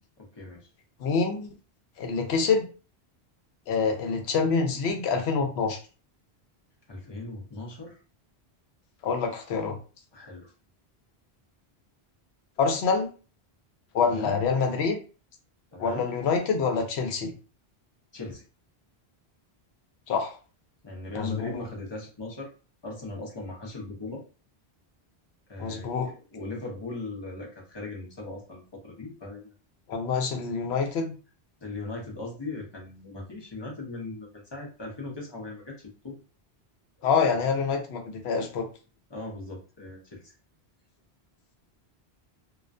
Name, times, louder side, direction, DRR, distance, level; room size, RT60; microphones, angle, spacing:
voice 1, 0.2-0.7 6.9-8.0 10.1-10.5 14.1-14.4 15.7-16.1 18.1-18.4 20.8-22.5 22.8-24.2 25.5-29.5 31.6-35.8 36.0-36.2 37.0-37.1 39.1-40.3, left 2 dB, 30° left, -2 dB, 0.6 m, -39 dB
voice 2, 1.0-1.5 2.0-2.7 3.7-5.8 9.0-9.8 12.6-13.1 13.9-15.0 15.8-17.3 20.1-20.4 21.1-21.6 25.6-26.1 29.9-31.1 37.0-38.7, left 5 dB, 80° left, 4 dB, 0.9 m, -26 dB
2.4 x 2.1 x 2.5 m, 0.36 s
omnidirectional pair, 1.1 m